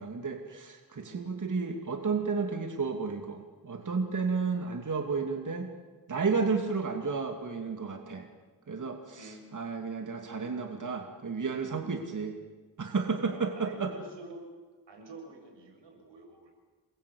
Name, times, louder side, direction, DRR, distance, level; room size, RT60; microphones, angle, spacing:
voice 1, 0.0-5.7 6.1-8.3 8.7-12.4 12.8-13.9, right 4 dB, 45° right, 4 dB, 2.7 m, -32 dB
voice 2, 13.3-14.4 14.9-16.5, right 3 dB, 90° right, 4 dB, 6.4 m, -47 dB
28.5 x 22.0 x 8.7 m, 1.3 s
cardioid pair, 95°, 42 cm